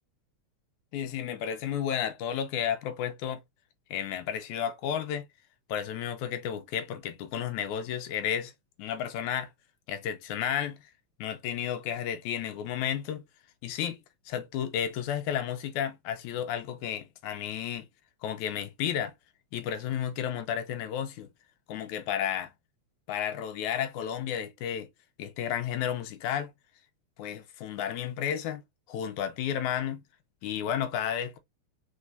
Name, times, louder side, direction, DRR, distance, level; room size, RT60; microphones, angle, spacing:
voice 1, 0.9-3.4 3.9-5.3 5.7-8.5 8.8-9.5 9.9-10.8 11.2-13.2 13.6-14.0 14.3-17.9 18.2-19.1 19.5-21.3 21.7-22.5 23.1-24.9 25.2-26.5 27.2-28.6 28.9-30.0 30.4-31.4, left 9 dB, 85° left, 2.2 m, -32 dB
4.6 x 4.1 x 2.5 m
omnidirectional pair, 3.4 m